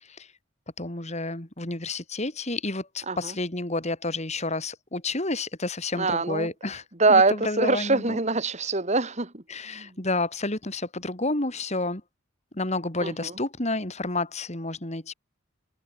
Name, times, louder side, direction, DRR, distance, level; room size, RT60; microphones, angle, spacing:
voice 1, 0.8-6.8 7.1-8.2 9.5-12.0 12.5-15.1, left 2 dB, 35° left, 3.2 m, -30 dB
voice 2, 6.0-6.5 7.0-9.4 9.7-9.9 13.0-13.3, right 3 dB, 35° right, 2.1 m, -23 dB
head